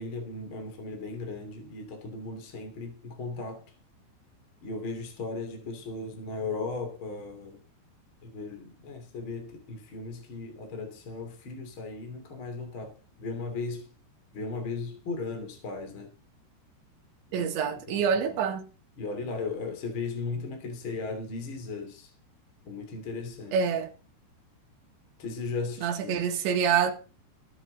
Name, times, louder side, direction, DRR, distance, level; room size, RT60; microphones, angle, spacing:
voice 1, 0.0-3.7 4.6-7.6 8.2-13.9 14.3-16.1 17.3-18.4 19.0-22.1 22.6-23.6 25.2-26.1, left 3 dB, 30° left, 3.0 m, -37 dB
voice 2, 17.3-18.6 23.5-23.9 25.8-26.9, right 7 dB, 80° right, 4.1 m, -26 dB
20.0 x 9.4 x 4.0 m
omnidirectional pair, 5.2 m